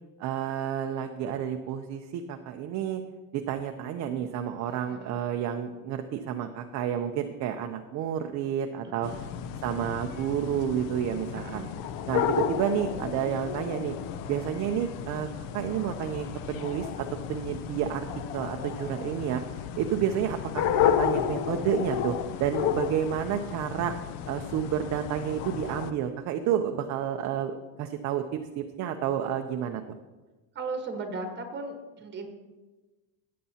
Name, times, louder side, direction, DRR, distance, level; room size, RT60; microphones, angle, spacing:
voice 1, 0.2-3.0 3.3-9.1 9.6-11.6 12.1-14.0 14.3-15.3 15.5-18.1 18.3-19.4 19.8-23.9 24.2-30.0, right 9 dB, 40° right, 5 dB, 0.5 m, -30 dB
voice 2, 4.7-5.1 9.0-9.3 11.3-11.7 30.5-32.3, right 3 dB, 25° right, 4 dB, 1.3 m, -37 dB
sound 1, 9.0-25.9, left 9 dB, 50° left, 0.6 m, -32 dB
16.0 x 8.5 x 2.8 m, 1.2 s
cardioid pair, 160°, 42 cm